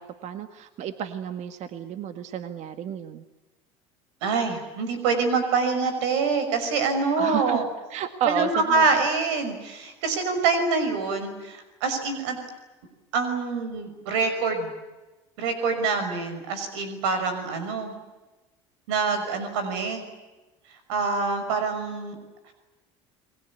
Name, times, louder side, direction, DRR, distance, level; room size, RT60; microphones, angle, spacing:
voice 1, 0.0-3.2 7.2-7.6 7.9-9.0, right 9 dB, 55° right, 9 dB, 1.8 m, -32 dB
voice 2, 4.2-7.7 8.3-12.4 13.1-14.7 15.4-17.9 18.9-20.0 20.9-22.2, right 4 dB, 85° right, 7 dB, 5.7 m, -25 dB
30.0 x 21.5 x 8.4 m, 1.1 s
supercardioid pair, 105°, 14 cm